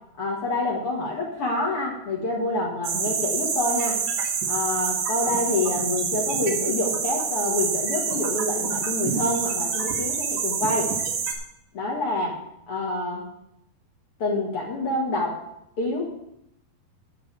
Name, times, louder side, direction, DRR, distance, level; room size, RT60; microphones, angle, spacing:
voice 1, 0.2-4.0 4.5-10.9 11.7-12.4 12.7-13.2 14.2-15.3 15.8-16.0, left 2 dB, 55° left, -2 dB, 1.6 m, -27 dB
sound 1, 2.8-11.3, right 6 dB, 90° right, 3.6 m, -27 dB
9.9 x 5.3 x 8.1 m, 0.78 s
omnidirectional pair, 4.9 m